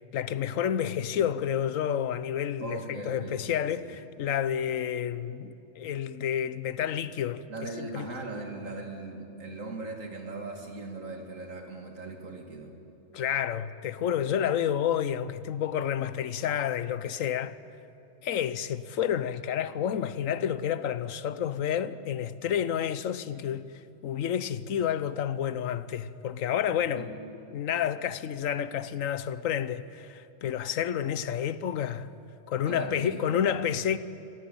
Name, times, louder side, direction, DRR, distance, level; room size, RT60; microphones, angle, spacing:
voice 1, 0.1-8.1 13.1-17.6 18.2-23.7 24.0-27.1 27.5-32.1 32.5-34.0, left 9 dB, 85° left, 1.1 m, -30 dB
voice 2, 2.6-3.5 3.8-4.0 7.5-12.7 26.8-27.1 32.6-33.6, right 2 dB, 80° right, 2.8 m, -39 dB
25.0 x 15.5 x 8.6 m
omnidirectional pair, 1.3 m